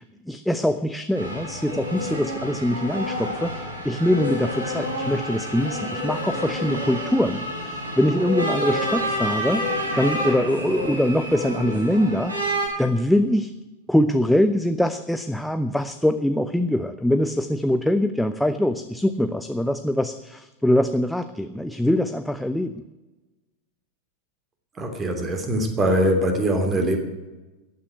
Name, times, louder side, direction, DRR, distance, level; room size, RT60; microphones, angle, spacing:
voice 1, 0.0-9.7 9.9-12.3 12.8-13.5 13.9-22.7, left 1 dB, ahead, 10 dB, 0.6 m, -23 dB
sound 1, 1.1-12.7, equal, 80° right, 5.8 m, -29 dB
voice 2, 24.7-27.0, right 1 dB, 20° right, 6 dB, 3.1 m, -22 dB
14.5 x 9.5 x 9.2 m, 1.1 s
figure-of-eight pair, 90°, 0 cm